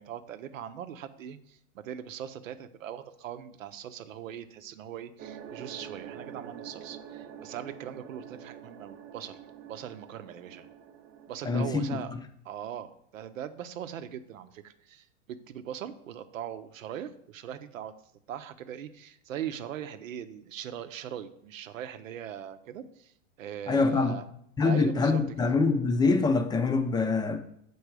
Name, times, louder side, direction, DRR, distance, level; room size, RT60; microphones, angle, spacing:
voice 1, 0.0-9.4 9.7-10.7 11.3-12.1 12.4-17.9 18.3-23.1 23.4-24.2 24.6-25.2, right 10 dB, 90° right, 0.7 m, -40 dB
sound 1, 5.2-11.4, right 8 dB, 30° right, 0.6 m, -46 dB
voice 2, 11.4-12.2 23.7-24.2 24.6-27.4, left 4 dB, 10° left, 0.6 m, -25 dB
6.8 x 4.6 x 4.7 m
hypercardioid pair, 115°, 38 cm